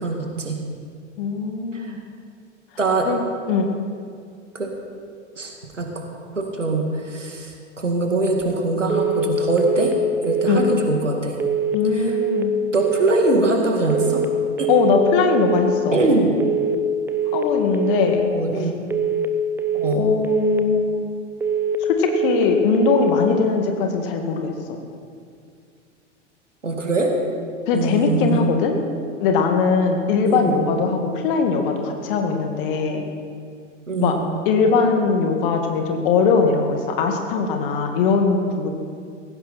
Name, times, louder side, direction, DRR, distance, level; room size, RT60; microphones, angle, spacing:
voice 1, 0.0-0.6 1.7-1.9 2.8-3.1 4.5-4.7 5.4-5.9 6.3-9.9 10.2-11.4 11.9-12.1 12.7-14.2 14.6-14.7 15.9-16.3 18.3-18.7 19.7-20.0 26.6-27.1 27.7-28.6 30.2-30.6 33.9-34.2, right 2 dB, 80° right, 2 dB, 2.3 m, -22 dB
voice 2, 1.2-2.0 3.1-3.7 10.5-10.7 11.7-12.5 14.7-16.0 17.3-18.3 19.9-21.1 22.0-24.8 27.7-28.7 29.2-33.1 34.0-34.1 34.5-38.7, left 5 dB, 45° left, 4 dB, 2.1 m, -20 dB
sound 1, 8.9-9.3 9.6-10.0 10.2-10.6 11.4-11.8 12.1-12.5 12.7-13.1 13.9-14.3 14.6-15.0 15.2-15.6 16.4-16.8 17.1-17.5 17.7-18.1 18.9-19.3 19.6-20.0 20.2-20.6 21.4-21.8 22.1-22.5 22.7-23.1, right 6 dB, 5° right, 0.6 m, -23 dB
17.5 x 15.5 x 4.3 m, 2.2 s
figure-of-eight pair, 95°, 36 cm